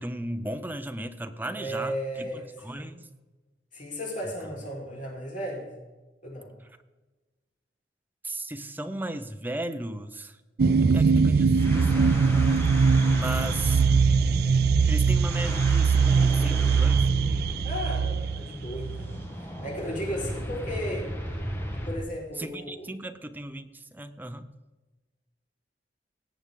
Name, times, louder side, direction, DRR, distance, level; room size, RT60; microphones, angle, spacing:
voice 1, 0.0-3.1 8.2-10.4 10.9-12.8 13.1-13.9 14.9-17.1 22.4-24.5, right 1 dB, 10° right, 8 dB, 0.7 m, -36 dB
voice 2, 1.5-2.9 3.7-5.7 6.2-6.5 17.6-21.1 21.9-22.9, equal, 50° left, -3 dB, 4.5 m, -35 dB
sound 1, 10.6-19.2, right 5 dB, 65° right, 0.4 m, -22 dB
sound 2, 11.5-22.1, equal, 15° left, 2.0 m, -34 dB
18.0 x 7.8 x 3.7 m, 1.2 s
head